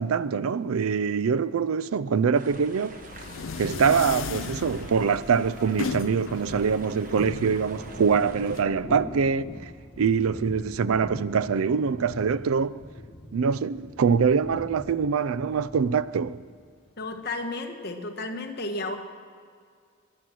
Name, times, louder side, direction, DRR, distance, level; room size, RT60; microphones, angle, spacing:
voice 1, 0.0-2.9 3.6-9.7 10.0-12.8 13.3-16.4, right 6 dB, 85° right, 0.4 m, -24 dB
sound 1, 2.3-8.6, right 3 dB, 40° right, 1.1 m, -47 dB
Thunder, 2.5-17.3, left 1 dB, 25° left, 1.5 m, -44 dB
sound 2, 2.8-8.6, left 5 dB, 65° left, 0.5 m, -36 dB
voice 2, 17.0-19.0, left 2 dB, 50° left, 1.3 m, -32 dB
22.0 x 7.5 x 6.2 m
head